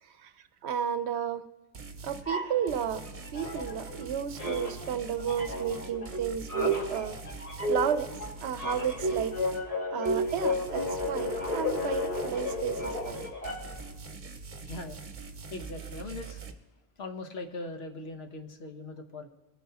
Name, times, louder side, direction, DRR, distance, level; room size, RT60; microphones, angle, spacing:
voice 1, 0.6-1.4 2.0-3.0 3.3-7.2 7.7-8.1 8.4-9.3 9.9-13.2, right 8 dB, 80° right, 12 dB, 0.9 m, -32 dB
sound 1, 1.7-2.3 2.7-9.7 10.1-16.5, right 4 dB, 50° right, 0.9 m, -44 dB
sound 2, 2.3-4.1 4.4-13.9, left 1 dB, 35° left, 1.4 m, -33 dB
voice 2, 14.6-15.0 15.5-16.4 17.0-19.3, left 2 dB, 70° left, 7 dB, 1.2 m, -40 dB
20.5 x 9.2 x 2.8 m, 0.97 s
omnidirectional pair, 1.1 m